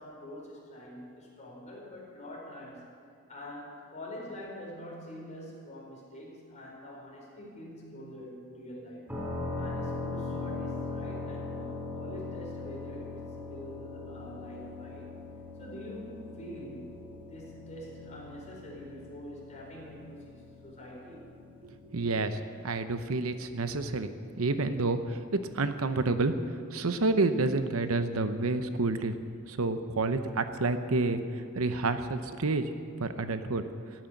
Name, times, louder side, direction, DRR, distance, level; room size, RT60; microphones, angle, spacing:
voice 1, 0.0-2.9 3.3-9.1 9.6-15.2 15.6-17.0 17.3-21.4 23.9-24.0, equal, 35° left, -3 dB, 4.6 m, -45 dB
sound 1, 9.1-22.8, left 3 dB, 10° right, 2.4 m, -40 dB
voice 2, 21.6-22.4 22.6-24.1 24.4-26.3 26.7-29.1 29.5-32.7 33.0-33.6, right 3 dB, 70° right, 9 dB, 0.8 m, -29 dB
15.0 x 9.3 x 9.0 m, 2.4 s
head